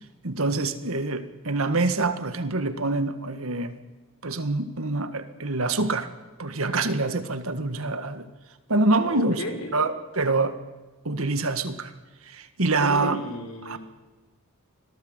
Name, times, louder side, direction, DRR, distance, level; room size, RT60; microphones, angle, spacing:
voice 1, 0.2-3.8 4.2-6.1 6.4-8.3 8.7-9.4 9.7-10.6 11.1-11.9 12.3-13.2 13.7-13.8, right 3 dB, 65° right, 10 dB, 1.7 m, -25 dB
voice 2, 9.0-9.8 12.8-13.8, left 1 dB, 75° left, 5 dB, 4.1 m, -34 dB
25.5 x 18.0 x 8.0 m, 1.3 s
head